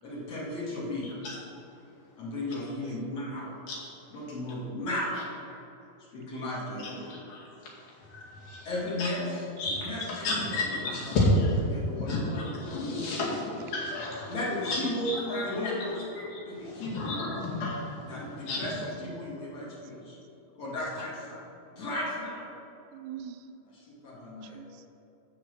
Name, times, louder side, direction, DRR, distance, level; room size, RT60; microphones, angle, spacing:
voice 1, 0.0-1.1 2.2-3.5 4.1-5.6 6.1-7.1 8.6-9.4 9.8-10.8 11.7-12.4 14.3-15.9 16.5-17.1 18.1-18.8 19.0-20.2 20.6-21.4 21.7-22.5 23.8-24.6, left 1 dB, 45° left, -6 dB, 2.9 m, -35 dB
voice 2, 1.0-2.2 2.5-2.6 3.7-4.1 5.1-5.2 6.8-8.7 9.0-9.1 9.6-14.4 14.6-14.8 15.1-18.7, left 1 dB, 75° left, -5 dB, 4.0 m, -32 dB
voice 3, 2.5-3.6 6.3-7.2 9.0-9.4 9.7-9.8 13.8-13.9 14.5-15.0 18.5-18.6 19.0-19.1 19.6-19.9 22.9-23.5 24.2-24.9, right 9 dB, 90° right, 9 dB, 2.5 m, -46 dB
13.5 x 4.6 x 6.6 m, 2.8 s
omnidirectional pair, 4.2 m